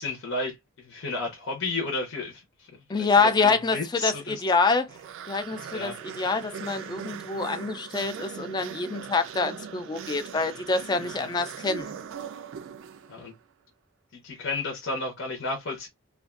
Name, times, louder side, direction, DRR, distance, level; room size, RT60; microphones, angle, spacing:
voice 1, 0.0-4.4 5.7-6.0 11.2-11.3 13.1-13.3 14.1-15.9, left 3 dB, 65° left, 0.7 m, -33 dB
voice 2, 2.9-4.9 5.3-11.9, left 4 dB, 20° left, 0.3 m, -26 dB
sound 1, 4.9-13.3, right 7 dB, 65° right, 0.3 m, -40 dB
2.4 x 2.2 x 2.3 m
head